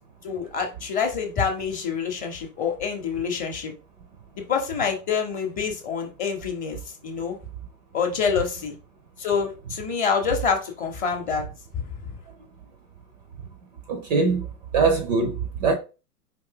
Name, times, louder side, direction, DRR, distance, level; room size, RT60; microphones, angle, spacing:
voice 1, 0.2-3.7 4.4-7.4 7.9-8.7 9.2-11.4, left 6 dB, 15° left, 0.7 m, -26 dB
voice 2, 13.9-14.5 14.7-15.7, right 4 dB, 30° right, 0.4 m, -22 dB
4.5 x 2.6 x 3.7 m
figure-of-eight pair, 110°, 49 cm